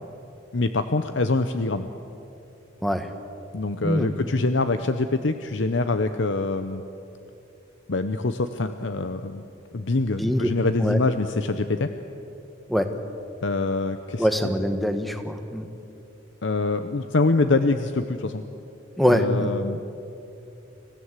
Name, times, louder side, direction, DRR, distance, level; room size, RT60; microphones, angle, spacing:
voice 1, 0.5-1.9 3.5-6.8 7.9-9.4 9.7-11.9 13.4-14.3 16.4-18.4 19.1-19.8, left 3 dB, 70° left, 9 dB, 0.8 m, -24 dB
voice 2, 10.2-10.5 10.8-11.0 12.7-12.9 14.2-15.7 19.0-19.5, equal, ahead, 7 dB, 1.3 m, -23 dB
26.5 x 16.0 x 8.2 m, 2.8 s
head